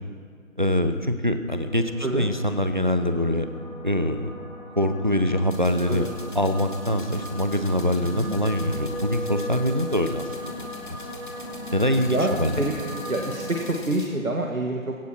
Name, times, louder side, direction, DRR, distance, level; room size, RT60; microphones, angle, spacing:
voice 1, 0.6-3.5 3.8-4.3 4.8-6.1 6.3-10.3 11.7-12.5, equal, 35° right, 8 dB, 0.9 m, -24 dB
sound 1, 1.5-13.6, equal, 15° right, 3.6 m, -37 dB
sound 2, 5.5-14.1, left 1 dB, 35° left, 1.8 m, -45 dB
voice 2, 12.1-12.7 13.1-15.0, right 2 dB, 85° right, 1 dB, 2.0 m, -27 dB
17.5 x 17.5 x 4.5 m, 2.1 s
figure-of-eight pair, 175°, 41 cm